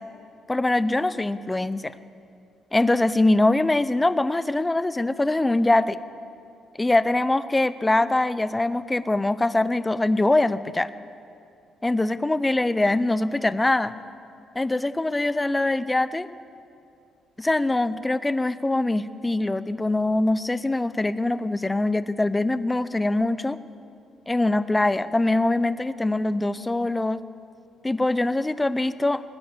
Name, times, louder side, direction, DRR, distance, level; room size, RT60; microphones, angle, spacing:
voice 1, 0.5-2.0 2.7-6.0 6.8-10.9 11.8-13.9 14.5-16.3 17.4-23.6 24.3-27.2 27.8-29.2, left 2 dB, 15° left, 15 dB, 0.6 m, -23 dB
20.0 x 9.4 x 7.2 m, 2.5 s
cardioid pair, 90°, 0 cm